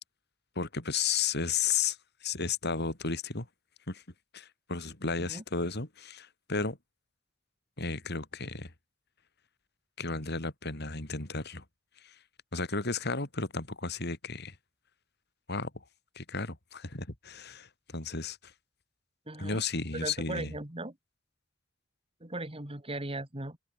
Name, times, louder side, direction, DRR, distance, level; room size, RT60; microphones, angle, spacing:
voice 1, 0.6-3.5 3.9-4.0 4.3-6.8 7.8-8.7 10.0-11.6 12.0-12.2 12.5-14.6 15.5-15.8 16.2-18.5 19.4-20.5, left 5 dB, 55° left, 3.8 m, -33 dB
voice 2, 19.3-19.6 19.9-20.9 22.2-23.6, right 2 dB, 30° right, 2.9 m, -38 dB
head